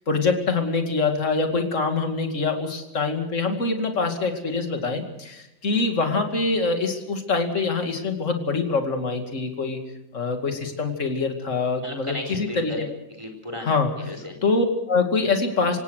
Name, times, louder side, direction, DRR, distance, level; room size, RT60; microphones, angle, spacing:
voice 1, 0.1-9.8 10.1-12.7 13.6-13.9 14.4-15.8, left 4 dB, 40° left, 5 dB, 2.7 m, -24 dB
voice 2, 11.8-13.7 14.0-14.4, left 1 dB, 15° right, 4 dB, 4.1 m, -34 dB
27.0 x 17.5 x 6.5 m, 0.87 s
omnidirectional pair, 2.0 m